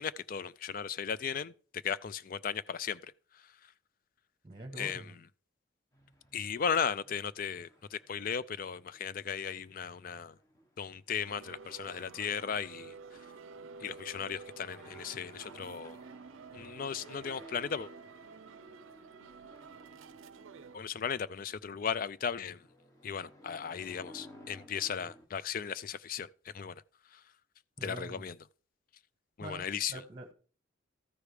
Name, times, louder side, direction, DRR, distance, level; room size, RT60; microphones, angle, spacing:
voice 1, 0.0-3.0 4.8-5.2 6.3-10.3 10.8-12.9 13.8-16.0 16.5-17.9 20.7-22.6 23.0-26.3 26.5-26.7 27.1-27.2 27.8-28.4 29.4-30.0, left 7 dB, 45° left, 0.4 m, -36 dB
voice 2, 4.4-5.1 27.8-28.2 29.4-30.3, right 1 dB, 20° right, 1.1 m, -45 dB
sound 1, 5.9-25.3, equal, 15° left, 1.1 m, -58 dB
sound 2, 11.2-20.8, right 5 dB, 75° right, 0.5 m, -50 dB
13.5 x 4.9 x 4.9 m
head